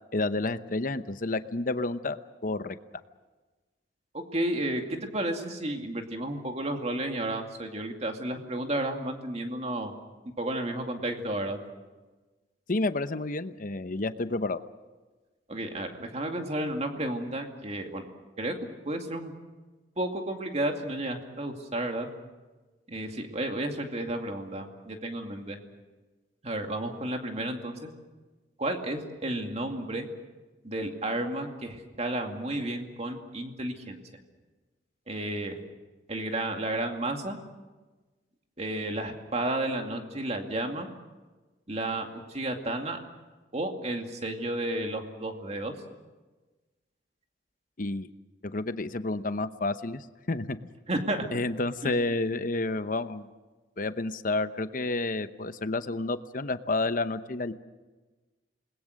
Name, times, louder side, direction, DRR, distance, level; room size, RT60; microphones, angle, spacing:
voice 1, 0.1-2.8 12.7-14.6 47.8-48.1 48.4-50.7 51.3-53.3 53.8-57.5, left 2 dB, 45° left, 11 dB, 0.9 m, -30 dB
voice 2, 4.1-9.9 10.4-11.6 15.5-18.0 18.4-18.6 18.8-19.3 20.0-22.1 22.9-25.6 26.4-27.9 28.6-30.1 30.6-34.0 35.1-35.6 36.1-37.4 38.6-40.9 41.7-43.0 43.5-45.7 50.9-51.3 51.8-51.9, right 1 dB, 35° right, 4 dB, 2.4 m, -32 dB
28.5 x 20.5 x 6.5 m, 1.2 s
head